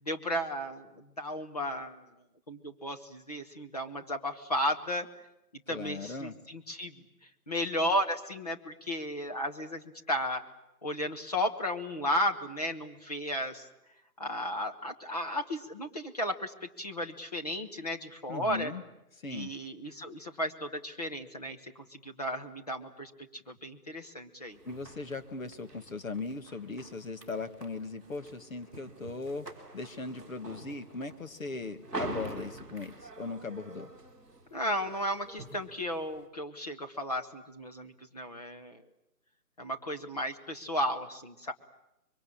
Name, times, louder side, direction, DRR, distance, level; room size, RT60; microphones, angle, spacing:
voice 1, 0.0-2.1 2.5-5.1 5.7-7.0 7.5-10.4 10.8-13.7 14.2-18.7 19.3-24.6 34.5-38.8 39.6-41.5, equal, 25° left, 5 dB, 1.2 m, -34 dB
voice 2, 5.7-6.3 18.3-18.8 19.2-19.5 24.7-29.5 29.7-33.9, left 3 dB, 60° left, 9 dB, 2.0 m, -38 dB
sound 1, 24.5-36.3, right 2 dB, 5° left, 2.4 m, -46 dB
25.5 x 23.5 x 8.6 m, 0.87 s
hypercardioid pair, 175°, 46 cm